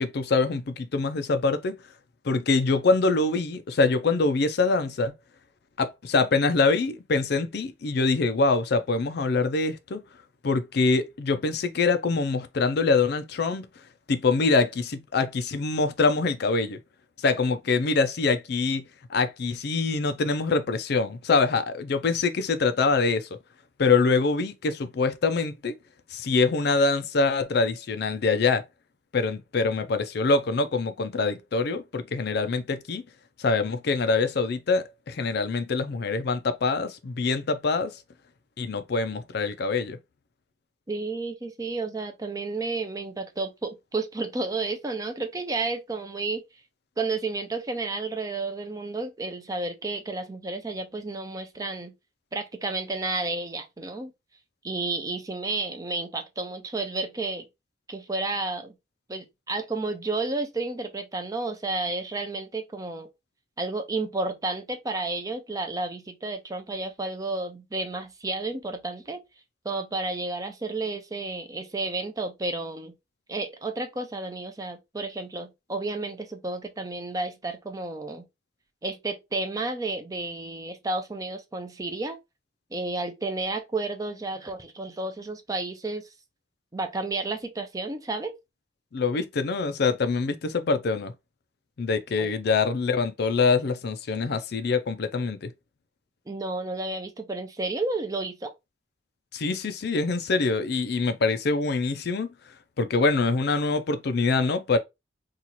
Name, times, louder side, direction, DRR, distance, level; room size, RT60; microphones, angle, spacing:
voice 1, 0.0-1.8 2.2-5.1 5.8-10.0 10.4-13.7 14.1-16.8 17.2-23.3 23.8-25.7 26.1-28.6 29.1-33.0 33.4-38.0 38.6-40.0 88.9-91.1 91.8-95.5 99.3-102.3 102.8-104.8, left 4 dB, 60° left, 0.4 m, -24 dB
voice 2, 40.9-46.4 47.0-51.9 52.3-54.1 54.6-57.4 57.9-58.7 59.1-63.1 63.6-69.2 69.6-72.9 73.3-78.3 78.8-82.2 82.7-86.0 86.7-88.3 92.2-92.3 96.3-98.5, right 3 dB, 20° right, 0.5 m, -31 dB
2.9 x 2.4 x 3.9 m
head